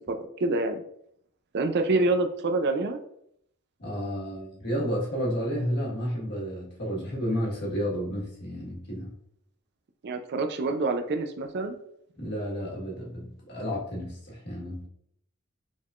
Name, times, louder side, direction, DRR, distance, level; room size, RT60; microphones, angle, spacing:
voice 1, 0.1-0.8 1.5-3.0 10.0-11.7, right 2 dB, 50° right, 8 dB, 0.4 m, -26 dB
voice 2, 3.8-9.1 12.2-14.8, equal, 55° left, -4 dB, 1.4 m, -31 dB
5.1 x 3.6 x 2.4 m, 0.71 s
head